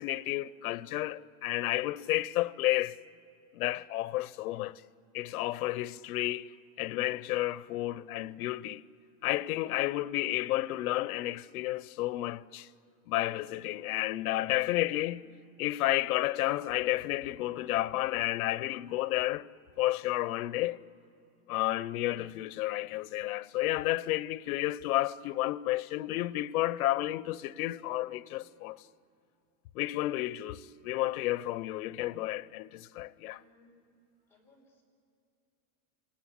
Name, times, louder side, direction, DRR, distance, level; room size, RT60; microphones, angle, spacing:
voice 1, 0.0-3.0 3.5-4.8 5.1-6.5 6.8-8.8 9.2-12.7 13.1-15.2 15.6-19.5 19.8-20.8 21.5-28.8 29.7-33.4, left 16 dB, 85° left, 0.8 m, -31 dB
voice 2, 33.2-33.9 34.3-34.8, left 3 dB, 5° left, 5.2 m, -62 dB
28.5 x 19.5 x 10.0 m
supercardioid pair, 170°, 43 cm